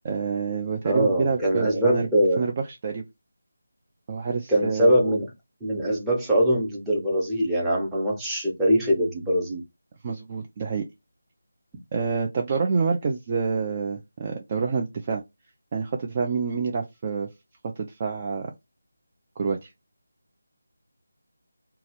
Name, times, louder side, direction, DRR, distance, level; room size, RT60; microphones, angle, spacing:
voice 1, 0.0-2.1 2.4-2.5 2.8-3.0 4.1-4.9 10.0-10.8 11.9-15.2 15.7-17.3 17.8-18.5 19.4-19.7, right 5 dB, 30° right, 0.4 m, -27 dB
voice 2, 0.8-2.4 4.5-5.3 5.6-9.6, equal, 5° right, 0.8 m, -22 dB
2.9 x 2.3 x 2.9 m
figure-of-eight pair, 160°, 0 cm